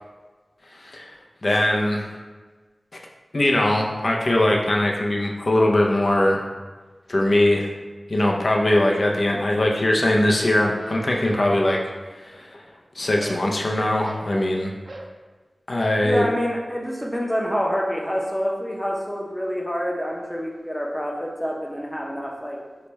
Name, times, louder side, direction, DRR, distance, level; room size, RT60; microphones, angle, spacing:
voice 1, 0.7-1.1 1.4-2.1 3.3-6.4 7.1-7.7 8.1-11.8 12.2-12.6 12.9-14.7 15.7-16.2, left 1 dB, 55° left, 0 dB, 0.6 m, -21 dB
sound 1, 10.8-12.0 12.3-12.8 13.2-14.3 14.9-15.2 15.8-16.1, right 1 dB, 50° right, 0.4 m, -40 dB
voice 2, 16.0-22.6, equal, 5° left, -2 dB, 0.6 m, -27 dB
4.9 x 2.3 x 4.1 m, 1.3 s
wide cardioid pair, 70°, 0 cm